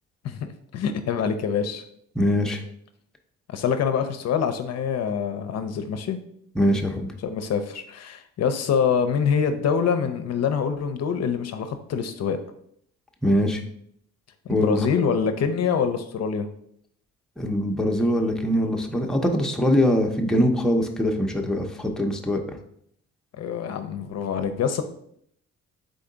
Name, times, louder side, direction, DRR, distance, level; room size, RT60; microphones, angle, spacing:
voice 1, 0.2-1.8 3.5-6.2 7.2-12.4 14.5-16.5 23.4-24.8, left 6 dB, 60° left, 8 dB, 0.5 m, -25 dB
voice 2, 2.2-2.6 6.6-7.1 13.2-13.6 14.5-14.9 17.4-22.4, equal, ahead, 2 dB, 0.5 m, -22 dB
3.8 x 3.4 x 3.8 m, 0.70 s
cardioid pair, 90°, 30 cm